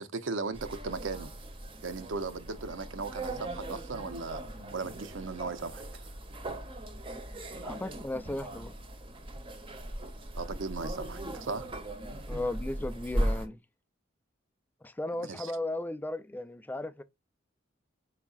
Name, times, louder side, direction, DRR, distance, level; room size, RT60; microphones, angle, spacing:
voice 1, 0.0-1.3 1.8-4.4 4.7-5.8 10.3-11.7 15.2-15.5, right 4 dB, 90° right, 0.6 m, -37 dB
sound 1, 0.5-13.5, right 1 dB, 30° right, 0.7 m, -38 dB
voice 2, 7.6-8.7 12.3-13.6 14.8-17.0, left 1 dB, 10° left, 0.3 m, -35 dB
4.6 x 4.1 x 2.3 m
head